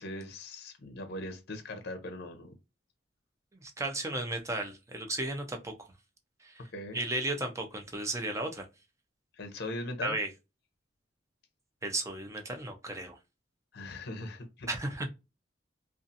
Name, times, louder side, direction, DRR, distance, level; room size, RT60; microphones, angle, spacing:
voice 1, 0.0-2.5 6.6-7.0 9.3-10.2 13.7-14.7, left 2 dB, 55° left, 0.6 m, -40 dB
voice 2, 3.6-5.9 6.4-6.5 6.9-8.6 10.0-10.3 11.8-13.2 14.7-15.1, right 2 dB, 15° right, 0.5 m, -34 dB
2.6 x 2.4 x 2.5 m
head